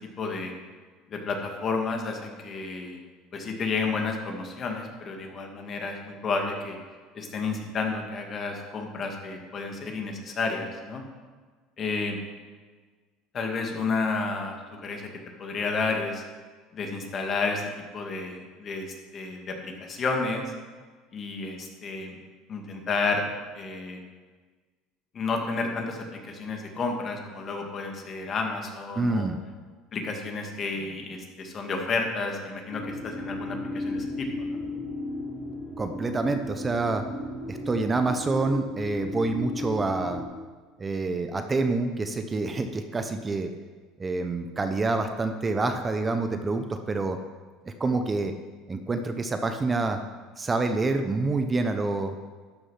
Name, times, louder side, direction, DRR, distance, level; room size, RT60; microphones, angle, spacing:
voice 1, 0.2-0.5 1.1-3.0 3.3-6.8 7.1-11.0 11.8-12.2 13.3-16.2 16.7-20.5 21.1-22.2 22.5-23.3 23.5-24.0 25.1-29.3 29.9-34.6, left 4 dB, 40° left, 2 dB, 2.0 m, -31 dB
voice 2, 29.0-29.4 35.8-37.0 37.5-40.2 40.8-43.5 44.0-47.2 47.6-48.3 48.7-50.0 50.4-52.2, right 3 dB, 20° right, 7 dB, 0.8 m, -27 dB
sound 1, 32.7-40.2, left 2 dB, 5° left, 3.0 m, -35 dB
12.5 x 6.8 x 5.6 m, 1.5 s
supercardioid pair, 105°, 0 cm